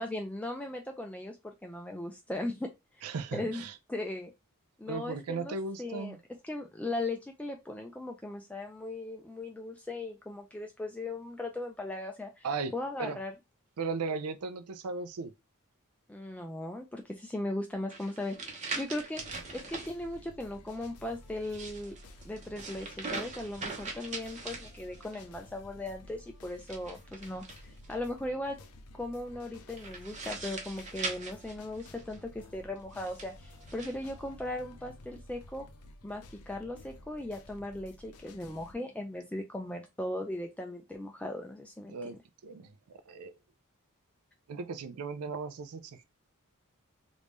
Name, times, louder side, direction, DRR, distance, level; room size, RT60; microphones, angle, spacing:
voice 1, 0.0-2.7 3.3-3.6 3.9-4.3 4.8-6.2 6.4-12.5 12.7-13.3 16.1-19.2 19.5-21.9 22.2-27.4 27.9-28.6 28.9-35.7 36.0-42.1, left 1 dB, 5° left, 0.3 m, -38 dB
voice 2, 3.0-3.8 4.9-6.2 12.4-12.7 13.0-13.2 13.8-15.3 41.9-42.2 42.4-43.4 44.5-46.0, right 4 dB, 80° right, 0.4 m, -37 dB
sound 1, 17.9-19.9 21.3-25.2 26.6-27.9 29.8-32.2 32.9-33.9, right 3 dB, 35° right, 0.8 m, -41 dB
sound 2, 19.1-38.7, left 1 dB, 85° left, 0.6 m, -53 dB
3.1 x 2.5 x 3.4 m
head